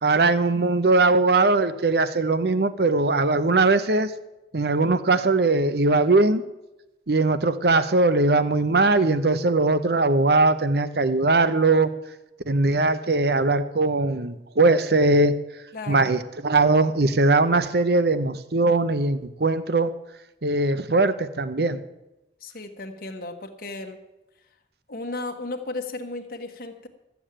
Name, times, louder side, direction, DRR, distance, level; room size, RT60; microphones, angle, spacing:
voice 1, 0.0-4.1 4.5-6.4 7.1-11.9 12.5-15.4 15.9-19.9 20.4-21.8, right 3 dB, 65° right, 12 dB, 0.8 m, -20 dB
voice 2, 15.7-16.1 22.4-24.0 24.9-26.9, left 2 dB, 55° left, 4 dB, 1.2 m, -34 dB
13.0 x 7.1 x 8.8 m, 0.95 s
head